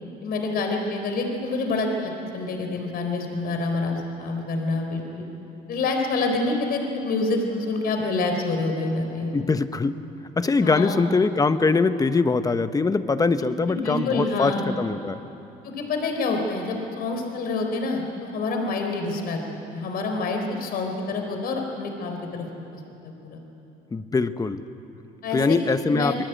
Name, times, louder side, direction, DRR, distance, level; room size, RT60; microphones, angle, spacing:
voice 1, 0.2-5.3 5.7-9.3 10.6-11.0 13.7-14.6 15.6-22.5 23.3-23.4 25.2-25.6 25.9-26.2, left 3 dB, 65° left, 3 dB, 4.4 m, -27 dB
voice 2, 9.3-10.0 10.4-15.2 23.9-24.6 25.3-26.2, left 4 dB, 20° left, 11 dB, 1.1 m, -22 dB
27.0 x 21.0 x 9.1 m, 2.9 s
cardioid pair, 110°, 17 cm